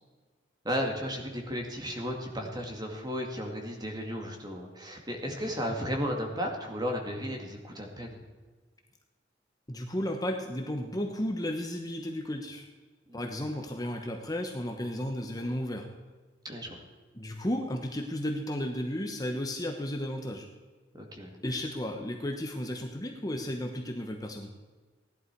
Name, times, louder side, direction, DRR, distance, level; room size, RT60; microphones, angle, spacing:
voice 1, 0.6-8.2 13.1-13.2 16.4-16.8 20.9-21.3, equal, 20° right, 2 dB, 2.2 m, -34 dB
voice 2, 9.7-12.7 13.1-15.9 17.2-20.5 21.4-24.5, left 1 dB, 20° left, 3 dB, 1.1 m, -33 dB
17.0 x 11.5 x 4.7 m, 1.4 s
head